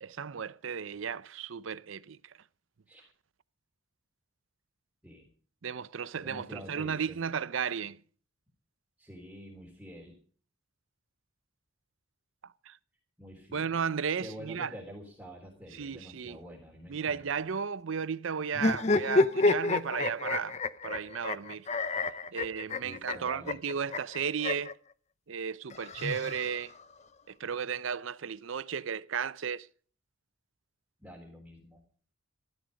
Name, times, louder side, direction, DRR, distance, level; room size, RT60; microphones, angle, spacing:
voice 1, 0.0-2.2 5.6-8.0 12.7-12.8 13.5-14.7 15.7-16.4 16.9-20.6 20.8-21.7 22.3-24.8 25.3-26.7 27.3-29.7, right 6 dB, 70° right, 0.6 m, -34 dB
voice 2, 6.1-7.2 9.0-10.1 13.2-13.8 14.2-17.2 22.3-22.4 22.8-23.6 31.0-31.8, equal, 5° right, 3.5 m, -47 dB
sound 1, 18.5-24.7 25.7-26.8, left 3 dB, 35° left, 0.7 m, -29 dB
14.0 x 13.0 x 5.2 m
head